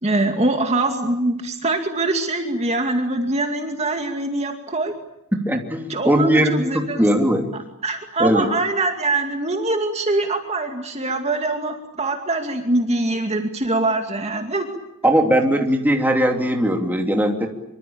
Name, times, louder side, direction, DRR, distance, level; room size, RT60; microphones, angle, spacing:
voice 1, 0.0-4.9 5.5-5.6 5.9-7.0 7.5-14.7, right 2 dB, 30° right, 4 dB, 2.4 m, -23 dB
voice 2, 5.3-7.5 8.2-8.5 15.0-17.5, equal, 10° right, 3 dB, 2.9 m, -19 dB
26.0 x 24.5 x 8.7 m, 0.86 s
head